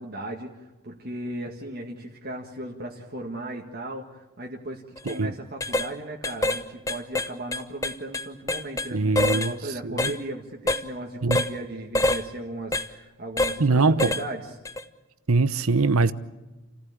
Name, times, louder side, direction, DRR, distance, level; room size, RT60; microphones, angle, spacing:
voice 1, 0.0-14.6, right 1 dB, 45° right, 1.8 m, -36 dB
sound 1, 5.0-5.1 5.6-5.9 6.2-6.6 6.9-8.9 9.1-9.5 10.0-10.2 10.7-10.8 11.3-11.5 11.9-12.2 12.7-12.9 13.4-13.6 14.0-14.2 14.6-14.8, left 2 dB, 15° left, 0.8 m, -25 dB
voice 2, 8.9-9.5 9.8-10.1 11.2-11.4 13.6-14.2 15.3-16.1, right 3 dB, 80° right, 1.0 m, -22 dB
29.5 x 15.0 x 8.7 m
head